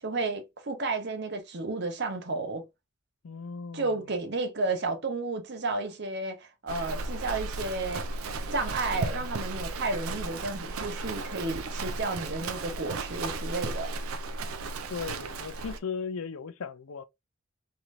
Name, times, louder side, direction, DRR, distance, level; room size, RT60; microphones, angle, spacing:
voice 1, 0.0-2.7 3.7-8.1 8.5-13.9, right 3 dB, 50° right, 0.8 m, -32 dB
voice 2, 3.2-4.0 14.9-17.0, left 5 dB, 75° left, 0.5 m, -37 dB
Livestock farm animals working animals, 6.7-15.8, right 3 dB, 75° right, 0.5 m, -35 dB
3.2 x 2.9 x 2.4 m
head